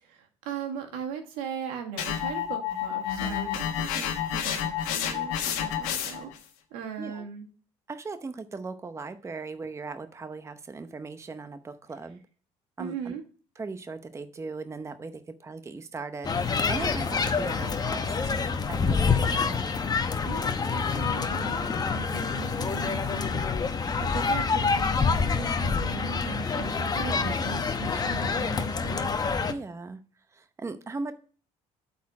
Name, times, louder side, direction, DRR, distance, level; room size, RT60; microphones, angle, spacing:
voice 1, 0.0-6.3 6.7-7.5 12.8-13.2 20.2-23.5 24.0-29.1, right 7 dB, 80° right, 3 dB, 1.7 m, -39 dB
sound 1, 2.0-6.4, left 9 dB, 85° left, 1.5 m, -30 dB
voice 2, 7.9-12.2 12.8-13.1 13.6-18.4 18.7-19.7 27.1-27.3 29.5-30.0 30.3-31.1, right 4 dB, 20° right, 10 dB, 0.8 m, -38 dB
sound 2, 16.2-29.5, left 5 dB, 30° left, 0.9 m, -27 dB
8.2 x 4.3 x 5.8 m, 0.42 s
supercardioid pair, 85°, 14 cm